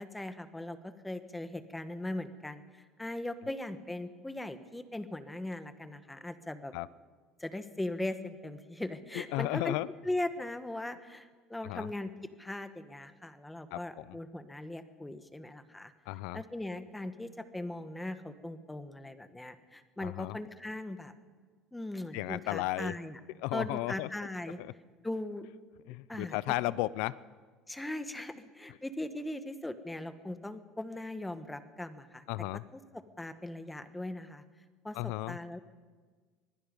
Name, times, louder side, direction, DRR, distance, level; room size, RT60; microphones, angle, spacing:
voice 1, 0.0-6.7 7.4-9.7 10.0-12.1 12.4-15.9 16.3-21.1 21.7-23.2 23.5-24.6 25.0-25.5 26.1-26.4 27.7-32.2 32.7-32.8 33.2-34.4 34.8-35.6, left 1 dB, 5° left, 10 dB, 1.3 m, -39 dB
voice 2, 9.1-9.9 11.6-11.9 13.7-14.2 16.1-16.4 20.0-20.4 22.1-22.9 23.4-24.1 24.6-24.7 25.9-27.2 32.3-32.6 34.9-35.4, left 18 dB, 75° left, 19 dB, 0.6 m, -34 dB
25.0 x 20.0 x 5.3 m, 1.5 s
cardioid pair, 130°, 0 cm